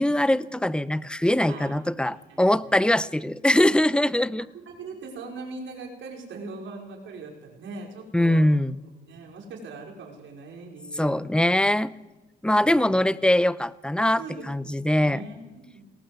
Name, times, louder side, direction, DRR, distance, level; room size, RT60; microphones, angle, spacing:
voice 1, 0.0-4.5 8.1-8.8 10.9-11.9 12.4-15.2, left 1 dB, 5° left, 17 dB, 0.7 m, -22 dB
voice 2, 1.5-2.8 3.5-3.7 4.4-8.6 9.1-11.4 12.6-12.9 14.2-14.5 14.9-15.8, right 3 dB, 70° right, 1 dB, 5.3 m, -41 dB
19.5 x 18.0 x 8.0 m, 1.1 s
cardioid pair, 90°, 20 cm